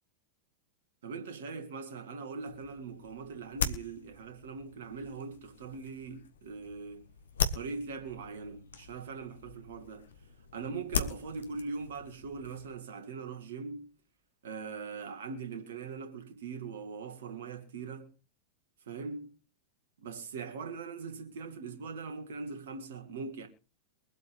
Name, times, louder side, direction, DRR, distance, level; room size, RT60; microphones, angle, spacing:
voice 1, 1.0-7.0 7.5-10.1 10.5-14.0 14.4-18.1 18.9-19.4 20.0-23.5, right 4 dB, 60° right, 2.8 m, -41 dB
sound 1, 2.5-12.8, left 6 dB, 65° left, 1.4 m, -39 dB
23.5 x 8.2 x 3.5 m
figure-of-eight pair, 90°, 0 cm